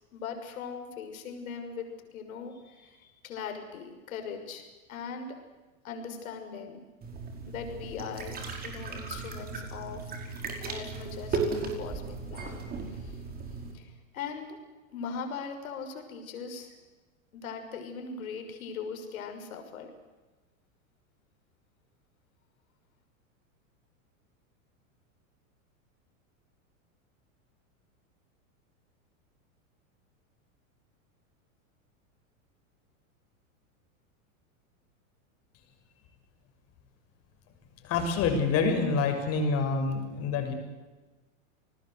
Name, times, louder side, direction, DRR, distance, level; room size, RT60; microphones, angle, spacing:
voice 1, 0.1-5.4 5.8-6.8 7.5-10.1 10.6-13.2 13.7-14.6 14.9-16.8 17.3-19.9, left 6 dB, 80° left, 6 dB, 6.2 m, -40 dB
sound 1, 7.0-13.7, right 4 dB, 20° right, 5.2 m, -36 dB
voice 2, 37.8-40.5, left 4 dB, 35° left, 5 dB, 6.3 m, -27 dB
29.0 x 20.0 x 8.1 m, 1.2 s
supercardioid pair, 145°, 41 cm